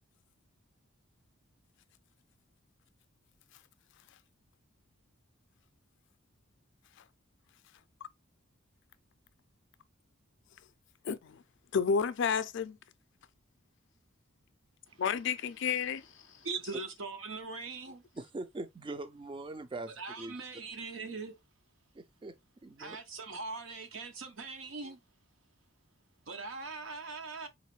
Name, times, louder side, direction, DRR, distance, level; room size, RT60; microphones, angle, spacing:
voice 1, 11.0-11.4 11.7-12.8 15.0-16.1, left 6 dB, 60° left, 0.4 m, -31 dB
voice 2, 16.4-18.0 20.0-21.4 22.8-25.0 26.3-27.5, right 4 dB, 70° right, 0.9 m, -41 dB
voice 3, 18.2-19.9 20.2-20.3 21.9-22.3 22.6-23.0, right 2 dB, 25° right, 0.4 m, -41 dB
4.0 x 3.0 x 3.1 m
head